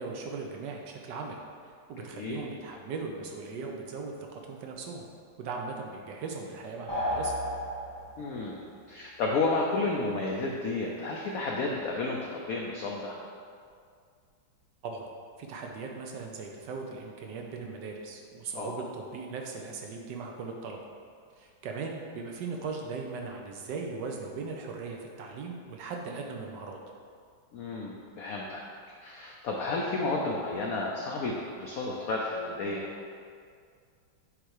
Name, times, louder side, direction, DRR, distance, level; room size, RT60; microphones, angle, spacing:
voice 1, 0.0-1.4 1.6-5.1 5.4-7.3 14.8-15.1 15.4-20.8 21.3-26.8, right 4 dB, 70° right, 1 dB, 1.1 m, -38 dB
sound 1, 6.9-8.4, equal, 15° right, 0.8 m, -32 dB
voice 2, 8.2-13.2 18.6-18.8 27.5-28.6 29.0-32.9, left 3 dB, 90° left, -1 dB, 0.7 m, -32 dB
7.3 x 3.3 x 4.7 m, 2.2 s
omnidirectional pair, 2.2 m